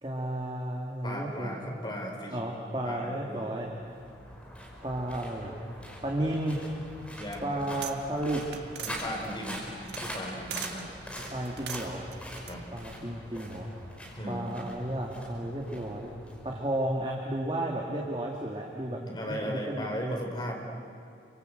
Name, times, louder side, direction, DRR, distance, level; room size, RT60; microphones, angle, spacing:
voice 1, 0.0-1.8 2.3-3.7 4.8-5.6 6.0-6.6 7.4-8.4 11.3-12.0 12.7-13.7 14.3-16.1 16.4-20.1, right 1 dB, 25° right, -1 dB, 2.4 m, -33 dB
voice 2, 1.0-2.4 2.8-3.5 7.1-7.6 8.8-9.7 10.0-10.9 12.5-12.6 14.2-14.5 18.9-20.5, equal, 25° left, 0 dB, 4.6 m, -37 dB
sound 1, 3.6-17.0, equal, 5° left, 5.0 m, -43 dB
sound 2, 6.9-8.0 8.2-10.8 11.1-12.5, right 9 dB, 70° right, 1.5 m, -41 dB
29.0 x 25.0 x 8.0 m, 2.5 s
head